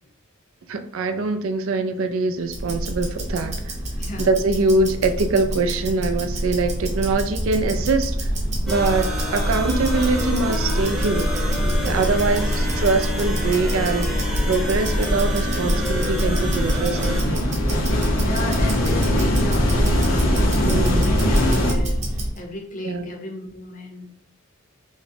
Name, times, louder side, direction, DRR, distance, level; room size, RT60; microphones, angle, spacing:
voice 1, 0.7-3.8 4.2-8.3 8.7-11.4 11.8-14.2 14.5-17.5 20.6-21.1 22.8-23.1, right 3 dB, 80° right, 8 dB, 0.4 m, -23 dB
Tick-tock, 2.4-22.4, right 1 dB, 35° right, 0.9 m, -26 dB
voice 2, 4.0-4.3 11.8-12.2 18.2-24.1, left 2 dB, 40° left, 2 dB, 0.7 m, -35 dB
sound 1, 5.4-6.4 6.8-21.7, left 1 dB, 80° left, 0.8 m, -24 dB
sound 2, 8.7-17.2, left 1 dB, ahead, 0.7 m, -29 dB
4.8 x 2.1 x 2.7 m, 0.63 s
head